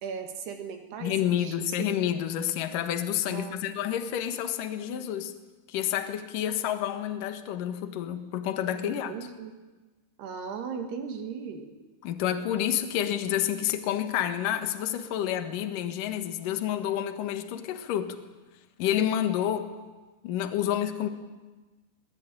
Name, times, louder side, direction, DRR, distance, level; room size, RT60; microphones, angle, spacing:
voice 1, 0.0-2.0 3.3-3.7 8.8-9.6 10.2-11.7, right 6 dB, 65° right, 5 dB, 3.5 m, -38 dB
voice 2, 1.0-5.3 5.7-9.1 12.0-18.2 18.8-19.7 20.2-21.1, left 10 dB, 60° left, 8 dB, 2.4 m, -29 dB
23.0 x 19.0 x 9.1 m, 1.3 s
omnidirectional pair, 5.4 m